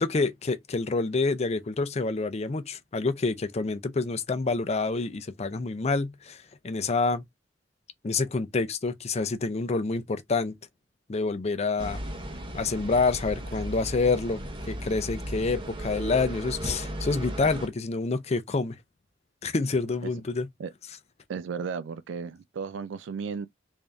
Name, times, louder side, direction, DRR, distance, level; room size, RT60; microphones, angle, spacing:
voice 1, 0.0-7.2 8.0-10.5 11.1-12.0 12.5-18.8 19.4-20.5, left 3 dB, 35° left, 0.5 m, -27 dB
sound 1, 11.8-17.7, equal, 30° right, 0.8 m, -35 dB
voice 2, 21.3-23.5, right 5 dB, 70° right, 0.3 m, -34 dB
3.4 x 2.6 x 3.4 m
head